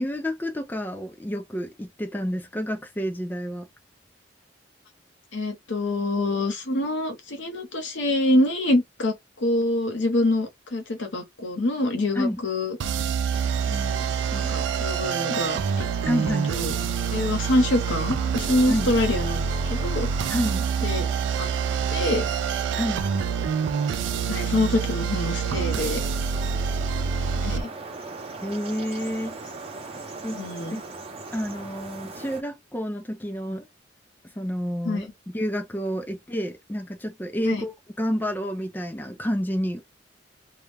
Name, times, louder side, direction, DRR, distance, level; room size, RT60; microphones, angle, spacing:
voice 1, 0.0-3.7 12.1-12.4 16.0-16.5 18.7-18.9 20.3-20.7 22.7-23.2 28.4-29.4 30.2-30.4 30.7-30.8 31.3-33.7 34.4-39.8, equal, 10° left, 0.4 m, -29 dB
voice 2, 5.3-12.8 13.7-14.0 14.3-15.9 16.5-16.7 17.1-19.4 19.7-20.1 20.8-21.1 21.4-21.5 21.9-22.3 24.3-26.0 27.4-27.7 30.3-30.8 34.8-35.0 37.4-37.7, left 1 dB, 80° left, 0.8 m, -25 dB
sound 1, 12.8-27.6, right 6 dB, 80° right, 0.3 m, -26 dB
sound 2, 13.3-32.4, right 3 dB, 30° right, 0.7 m, -39 dB
2.3 x 2.1 x 3.2 m
head